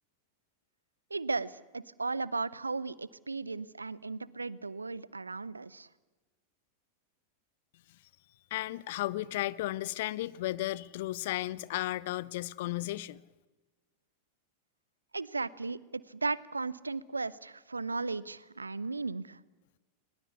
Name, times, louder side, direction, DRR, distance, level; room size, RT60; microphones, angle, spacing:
voice 1, 1.1-5.9 15.1-19.4, right 3 dB, 80° right, 0.7 m, -36 dB
voice 2, 8.5-13.2, left 16 dB, 50° left, 0.7 m, -34 dB
21.0 x 21.0 x 8.4 m
figure-of-eight pair, 90°, 0 cm